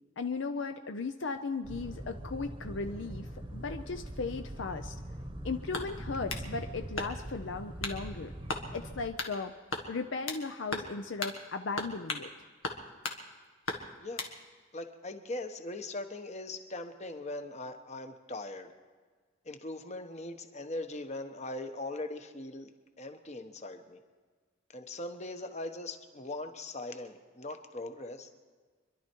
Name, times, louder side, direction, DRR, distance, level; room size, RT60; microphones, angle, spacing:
voice 1, 0.2-3.3 3.5-4.9 5.4-8.3 8.7-9.5 9.9-12.3, left 4 dB, 65° left, 7 dB, 0.6 m, -36 dB
sound 1, 1.6-9.1, right 1 dB, 25° right, 1.0 m, -42 dB
sound 2, 5.7-6.5 7.0-7.4 7.8-8.0 8.5-8.7 9.2-9.4 9.7-10.4 10.7-10.9 11.2-11.4 11.8-12.3 12.6-13.2 13.7-14.3, left 3 dB, 90° left, 1.6 m, -36 dB
voice 2, 14.7-18.7 19.4-22.7 23.0-24.0 24.7-28.3, left 2 dB, 35° left, 7 dB, 1.1 m, -40 dB
26.0 x 11.5 x 4.6 m, 1.5 s
head